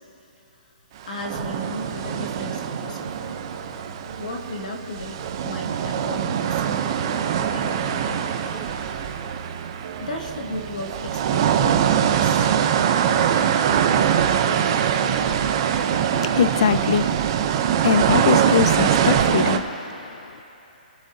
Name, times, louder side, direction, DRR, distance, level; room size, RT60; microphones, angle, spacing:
voice 1, 1.0-3.3 4.2-7.1 7.5-8.6 10.0-12.5, left 1 dB, 55° left, 2.1 m, -35 dB
sound 1, 1.1-4.6 4.9-19.6, right 9 dB, 25° right, 0.7 m, -22 dB
sound 2, 3.0-18.9, right 6 dB, 55° right, 1.9 m, -40 dB
sound 3, 6.6-8.9, right 3 dB, ahead, 3.5 m, -43 dB
voice 2, 15.6-20.4, left 7 dB, 35° left, 0.4 m, -23 dB
28.0 x 11.0 x 2.8 m
hypercardioid pair, 175°, 5 cm